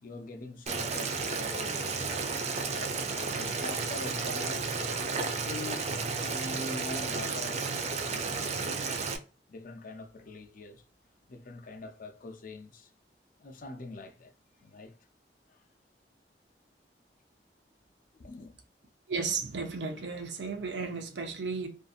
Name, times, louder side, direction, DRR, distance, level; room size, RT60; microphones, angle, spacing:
voice 1, 0.0-4.7 5.1-5.9 6.2-7.6 8.0-8.9 9.5-10.8 11.3-12.9 13.4-14.3 14.6-15.0 15.5-15.6 18.2-18.5, left 2 dB, 50° left, 0.5 m, -44 dB
Boiling, 0.7-9.2, right 4 dB, 40° right, 0.4 m, -32 dB
voice 2, 19.1-21.7, right 4 dB, 80° right, 0.6 m, -34 dB
2.6 x 2.5 x 2.3 m
head